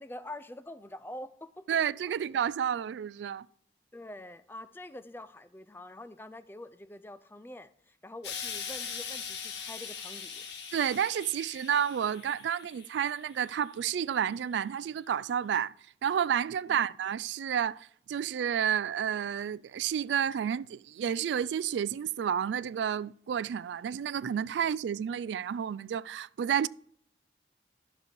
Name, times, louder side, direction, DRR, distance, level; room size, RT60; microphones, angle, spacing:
voice 1, 0.0-1.6 2.1-2.2 3.9-10.4 16.7-16.8, left 1 dB, 10° left, 0.4 m, -45 dB
voice 2, 1.7-3.5 10.7-15.7 16.0-26.7, right 8 dB, 85° right, 0.3 m, -30 dB
Explosion, 8.2-13.5 14.4-14.5, left 6 dB, 90° left, 1.5 m, -41 dB
11.5 x 6.8 x 4.6 m
head